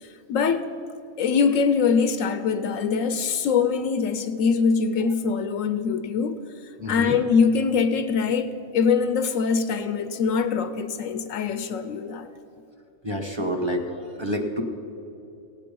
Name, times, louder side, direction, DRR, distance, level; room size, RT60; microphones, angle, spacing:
voice 1, 0.0-0.8 1.2-6.4 6.9-12.3, left 5 dB, 75° left, 10 dB, 0.9 m, -23 dB
voice 2, 6.8-7.1 13.0-14.6, equal, 20° right, 1 dB, 1.0 m, -28 dB
17.5 x 8.4 x 5.3 m, 2.8 s
omnidirectional pair, 1.4 m